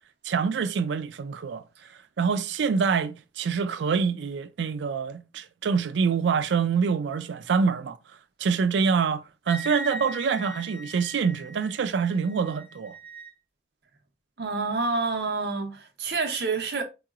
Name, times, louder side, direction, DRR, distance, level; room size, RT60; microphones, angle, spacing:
voice 1, 0.2-1.6 2.2-8.0 8.4-12.9, right 5 dB, 85° right, 0.4 m, -26 dB
Wind instrument woodwind instrument, 9.5-13.3, right 1 dB, 10° left, 2.0 m, -40 dB
voice 2, 14.4-16.8, right 4 dB, 70° right, 0.8 m, -28 dB
3.8 x 2.9 x 2.4 m
head